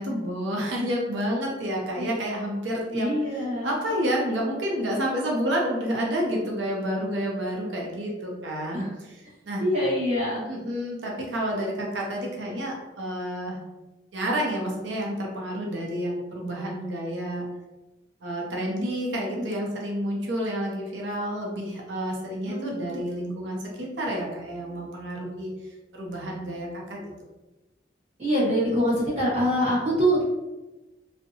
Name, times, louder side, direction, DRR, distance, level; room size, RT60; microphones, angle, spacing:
voice 1, 0.0-9.6 10.5-13.6 14.1-17.4 18.2-27.1, equal, 80° right, -1 dB, 0.6 m, -29 dB
voice 2, 2.9-3.7 8.7-8.9 9.6-10.4 19.3-19.5 22.5-23.0 28.2-30.2, equal, 40° right, -8 dB, 1.2 m, -25 dB
2.6 x 2.1 x 2.7 m, 1.1 s
head